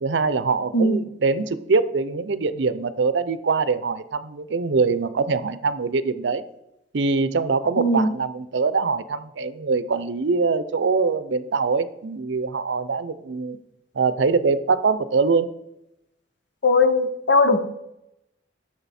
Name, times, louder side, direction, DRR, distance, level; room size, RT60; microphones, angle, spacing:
voice 1, 0.0-6.4 6.9-13.6 14.0-15.5, right 4 dB, 75° right, 14 dB, 0.6 m, -23 dB
voice 2, 7.8-8.1 16.6-17.6, left 2 dB, 70° left, 9 dB, 0.9 m, -19 dB
10.5 x 6.4 x 4.2 m, 0.85 s
head